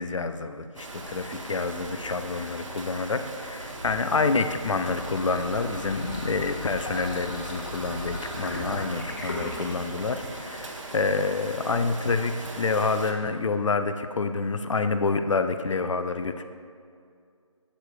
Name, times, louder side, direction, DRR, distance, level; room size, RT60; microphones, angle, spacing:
voice 1, 0.0-16.4, left 4 dB, 65° left, 9 dB, 0.5 m, -28 dB
sound 1, 0.8-13.1, right 2 dB, 65° right, 1.0 m, -39 dB
sound 2, 4.1-8.1, right 1 dB, 10° right, 0.6 m, -49 dB
sound 3, 4.5-10.5, left 2 dB, 40° left, 1.2 m, -38 dB
11.5 x 7.1 x 2.4 m, 2.3 s
figure-of-eight pair, 155°, 17 cm